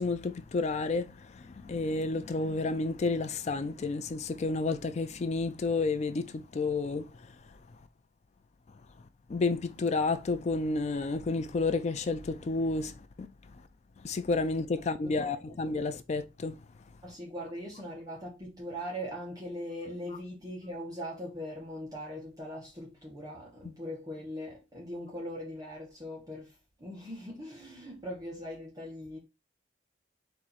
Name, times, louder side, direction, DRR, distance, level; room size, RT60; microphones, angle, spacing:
voice 1, 0.0-7.1 9.3-13.3 14.0-16.6, left 3 dB, 40° left, 0.4 m, -31 dB
voice 2, 15.0-15.6 17.0-29.2, equal, 20° right, 1.2 m, -41 dB
4.3 x 2.7 x 4.1 m
head